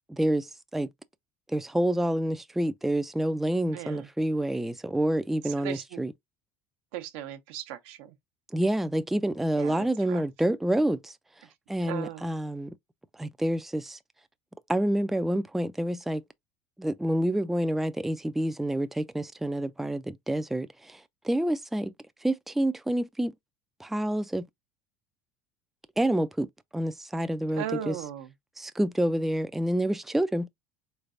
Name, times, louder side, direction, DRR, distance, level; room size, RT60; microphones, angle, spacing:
voice 1, 0.1-0.9 1.5-6.1 8.5-11.1 11.7-12.7 13.2-14.0 14.7-16.2 16.8-21.0 21.2-21.9 22.2-23.3 23.8-24.5 26.0-26.5 26.7-27.9 28.6-30.5, right 1 dB, 5° right, 0.3 m, -28 dB
voice 2, 3.7-4.1 5.4-6.0 6.9-8.1 9.5-10.2 11.8-12.2 27.6-28.3, right 10 dB, 75° right, 0.8 m, -37 dB
4.0 x 3.3 x 2.5 m
supercardioid pair, 90°, 6 cm